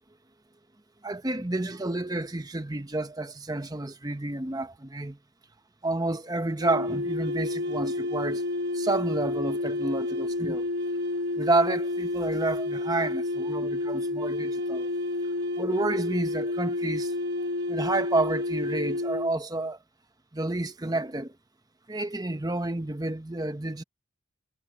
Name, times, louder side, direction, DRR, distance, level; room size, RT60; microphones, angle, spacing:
voice 1, 1.0-5.2 5.8-8.4 8.7-10.7 11.4-14.9 15.6-17.1 17.7-19.8 20.3-21.3 21.9-23.8, right 2 dB, 20° right, 0.9 m, -30 dB
sound 1, 6.6-19.3, left 2 dB, 50° right, 1.4 m, -30 dB
head